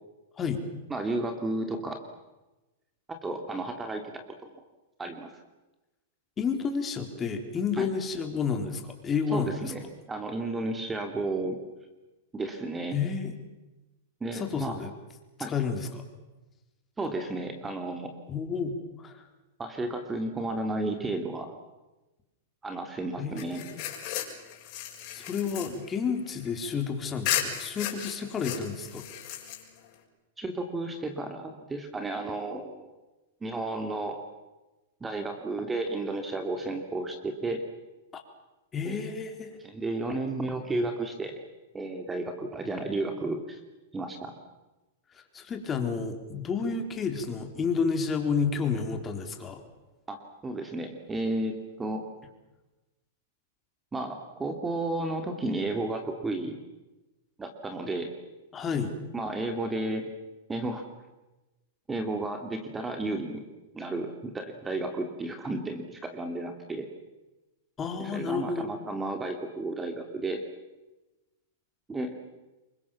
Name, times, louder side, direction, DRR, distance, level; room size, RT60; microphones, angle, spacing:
voice 1, 0.9-2.0 3.1-4.5 5.0-5.4 7.8-7.9 9.3-9.8 10.1-11.6 12.3-13.0 14.2-14.8 15.4-15.5 17.0-18.1 19.6-21.5 22.6-23.6 30.4-32.9 33.4-34.2 35.0-37.6 38.8-39.0 39.6-41.3 41.7-43.6 43.9-44.3 50.1-52.0 53.9-56.6 57.4-58.1 59.1-60.0 60.5-60.8 61.9-63.4 63.7-66.9 68.0-70.4 71.9-72.2, right 2 dB, 15° right, 5 dB, 2.7 m, -32 dB
voice 2, 6.4-9.6 12.9-13.4 14.3-14.9 15.5-16.0 18.3-19.2 23.2-23.7 25.1-29.1 38.1-38.2 38.7-39.5 45.3-49.6 58.5-58.9 67.8-68.7, left 5 dB, 20° left, 5 dB, 4.0 m, -30 dB
sound 1, 23.4-26.8 27.2-29.9, left 11 dB, 45° left, 6.4 m, -35 dB
27.5 x 23.5 x 7.3 m, 1.1 s
hypercardioid pair, 130°, 0 cm